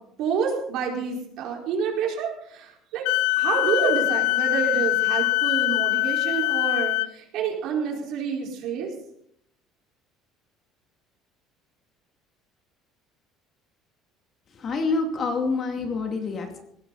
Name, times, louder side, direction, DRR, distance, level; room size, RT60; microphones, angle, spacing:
voice 1, 0.2-3.0 3.4-8.9, right 6 dB, 60° right, 0 dB, 4.8 m, -28 dB
Wind instrument woodwind instrument, 3.1-7.1, left 20 dB, 90° left, 0.5 m, -23 dB
voice 2, 14.5-16.6, left 3 dB, 35° left, 4 dB, 2.6 m, -27 dB
18.0 x 16.0 x 4.2 m, 0.72 s
cardioid pair, 155°, 0 cm